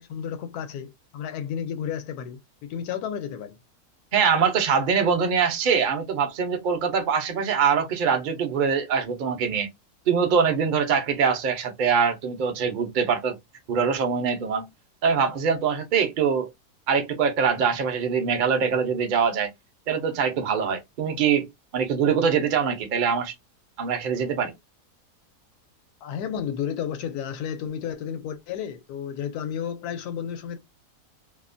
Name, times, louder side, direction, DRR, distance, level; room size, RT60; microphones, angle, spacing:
voice 1, 0.0-3.6 26.0-30.6, left 8 dB, 80° left, 1.1 m, -32 dB
voice 2, 4.1-9.7 10.1-13.4 13.7-14.7 15.0-16.5 16.9-19.5 19.9-21.5 21.7-23.3 23.8-24.5, right 6 dB, 55° right, 0.5 m, -23 dB
2.8 x 2.0 x 2.5 m
omnidirectional pair, 1.6 m